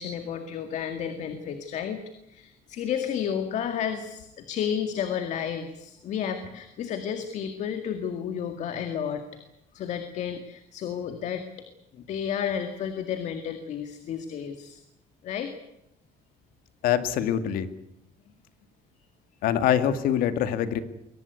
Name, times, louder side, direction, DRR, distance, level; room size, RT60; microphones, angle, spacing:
voice 1, 0.0-9.2 9.7-11.4 11.9-14.8 15.2-15.5, left 8 dB, 50° left, 8 dB, 2.1 m, -32 dB
voice 2, 16.8-17.7 19.4-20.8, left 10 dB, 65° left, 11 dB, 2.1 m, -24 dB
23.0 x 18.5 x 9.6 m, 0.86 s
cardioid pair, 170°, 16 cm